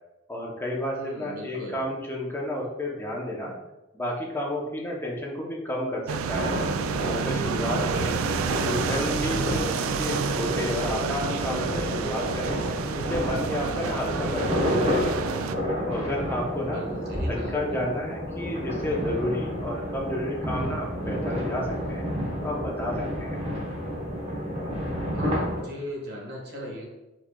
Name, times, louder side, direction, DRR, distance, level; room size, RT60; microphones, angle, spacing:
voice 1, 0.3-3.5 3.9-6.5 7.0-8.2 8.6-12.6 12.9-15.2 15.8-16.9 17.3-22.1 22.4-23.4, left 1 dB, 10° left, -2 dB, 0.8 m, -31 dB
voice 2, 0.9-1.8 7.9-9.1 16.5-17.8 25.1-26.9, equal, 55° right, -3 dB, 1.4 m, -38 dB
sound 1, 6.1-15.5, right 6 dB, 85° right, 0.3 m, -30 dB
sound 2, 6.3-25.6, equal, 30° right, 1.0 m, -30 dB
4.6 x 4.2 x 2.3 m, 1.0 s
head